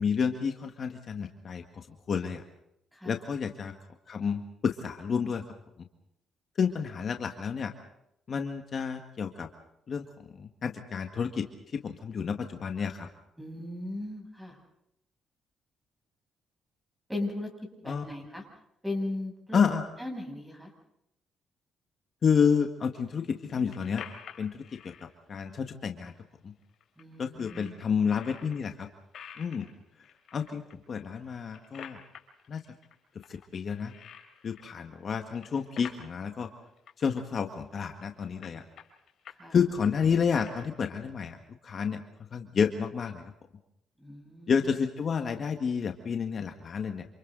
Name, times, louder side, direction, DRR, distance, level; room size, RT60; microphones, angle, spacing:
voice 1, 0.0-1.6 2.1-2.4 3.1-3.7 4.1-5.4 6.6-7.7 8.3-9.5 9.9-10.0 10.4-11.5 11.7-13.1 17.9-18.0 19.5-19.9 22.2-24.0 24.4-24.9 25.3-26.1 26.4-26.5 27.2-28.9 29.4-29.7 30.3-30.6 30.9-32.0 32.5-32.6 33.3-33.9 34.4-36.5 37.0-38.6 39.5-41.4 41.6-42.0 42.3-43.3 44.5-47.1, left 6 dB, 50° left, 5 dB, 1.8 m, -29 dB
voice 2, 2.9-3.2 13.4-14.6 17.1-17.5 17.8-18.4 18.8-19.6 20.0-20.7 27.0-27.8 39.4-39.6 44.0-44.6, left 2 dB, 5° right, 2 dB, 8.0 m, -37 dB
sound 1, 23.2-25.0 25.8-25.9 26.2-26.3 26.6-27.0 27.4-28.7 29.1-30.7 31.2-32.9 33.2-34.9 35.1-36.1 36.4-36.5 36.8-37.2 37.7-38.0 38.4-39.4 39.7-40.9, left 8 dB, 65° left, 3.8 m, -49 dB
28.5 x 28.0 x 4.1 m, 0.80 s
cardioid pair, 90°, 0 cm